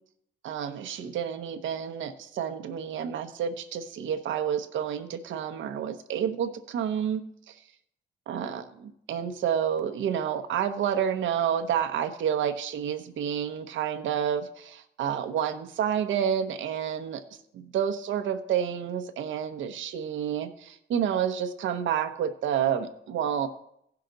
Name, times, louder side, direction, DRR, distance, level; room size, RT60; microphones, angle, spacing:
voice 1, 0.4-7.5 8.3-17.2 17.5-23.5, right 8 dB, 75° right, 8 dB, 1.0 m, -29 dB
15.5 x 5.8 x 3.9 m, 0.75 s
cardioid pair, 90°, 20 cm